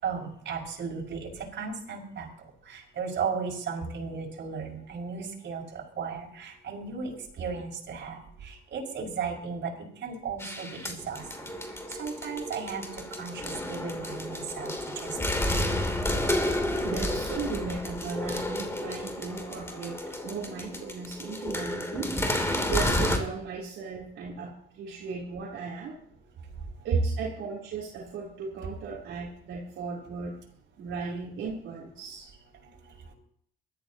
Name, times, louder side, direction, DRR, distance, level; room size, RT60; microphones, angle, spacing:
voice 1, 0.0-2.3 2.7-9.7 10.0-11.5 12.0-15.2, right 5 dB, 65° right, -1 dB, 6.0 m, -35 dB
sound 1, 10.4-23.2, left 1 dB, 15° left, 3.0 m, -31 dB
voice 2, 16.8-20.0 20.2-22.1 22.6-26.0 26.8-30.4 30.8-32.3, right 5 dB, 85° right, -6 dB, 3.4 m, -36 dB
23.0 x 13.5 x 2.9 m, 0.65 s
cardioid pair, 90°, 20 cm